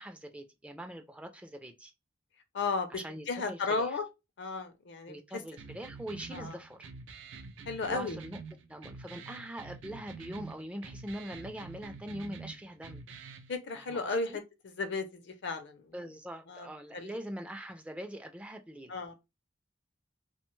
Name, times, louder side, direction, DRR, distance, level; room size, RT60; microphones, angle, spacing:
voice 1, 0.0-1.9 2.9-4.0 5.1-6.9 7.9-8.4 8.7-13.0 13.7-14.4 15.9-19.1, equal, 5° right, 0.3 m, -43 dB
voice 2, 2.5-2.9 3.3-4.0 4.4-5.2 6.3-6.5 7.7-8.2 13.5-15.8 16.5-16.7 16.9-17.1 18.9-19.1, left 4 dB, 65° left, 0.5 m, -34 dB
sound 1, 5.6-13.5, right 4 dB, 80° right, 0.4 m, -47 dB
2.8 x 2.1 x 3.0 m
head